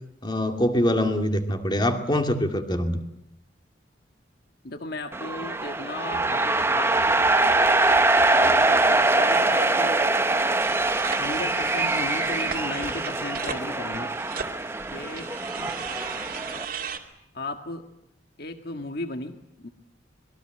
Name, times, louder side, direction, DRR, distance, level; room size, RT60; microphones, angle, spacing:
voice 1, 0.2-3.0, left 1 dB, 25° left, 5 dB, 2.3 m, -24 dB
voice 2, 4.6-7.7 8.4-10.1 11.1-14.1 14.9-15.3 15.6-15.8 17.3-17.9 18.4-19.7, left 2 dB, 60° left, 6 dB, 1.7 m, -35 dB
sound 1, 5.1-16.7, right 2 dB, 15° right, 0.9 m, -23 dB
sound 2, 10.6-17.0, right 6 dB, 50° right, 2.6 m, -37 dB
26.0 x 22.0 x 7.9 m, 0.82 s
head